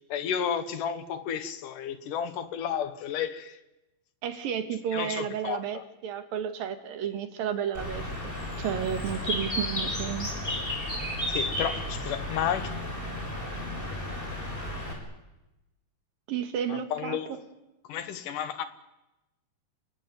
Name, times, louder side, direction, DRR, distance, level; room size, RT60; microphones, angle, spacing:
voice 1, 0.1-3.6 4.9-5.9 11.3-12.7 16.7-17.3 17.9-18.7, left 8 dB, 70° left, 2.8 m, -32 dB
voice 2, 4.2-10.3 16.3-17.4, right 8 dB, 90° right, 3.6 m, -32 dB
Bird, 7.7-14.9, left 1 dB, 15° left, 6.4 m, -33 dB
28.0 x 20.5 x 9.5 m
omnidirectional pair, 3.9 m